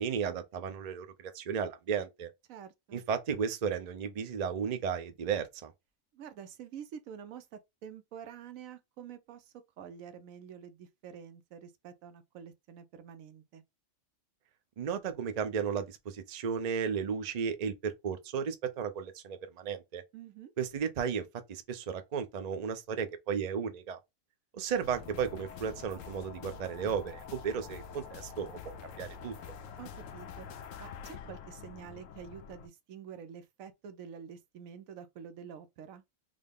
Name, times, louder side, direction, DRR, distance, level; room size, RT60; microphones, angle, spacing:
voice 1, 0.0-2.3 2.9-5.7 14.8-20.0 20.6-21.2 21.5-24.0 24.5-28.6 29.0-29.3, right 7 dB, 50° right, 0.5 m, -34 dB
voice 2, 2.5-3.0 6.1-13.6 20.1-20.5 29.8-30.5 30.8-36.0, right 8 dB, 85° right, 1.0 m, -48 dB
sound 1, 24.8-32.7, left 6 dB, 75° left, 0.9 m, -46 dB
3.7 x 2.1 x 3.5 m
omnidirectional pair, 1.4 m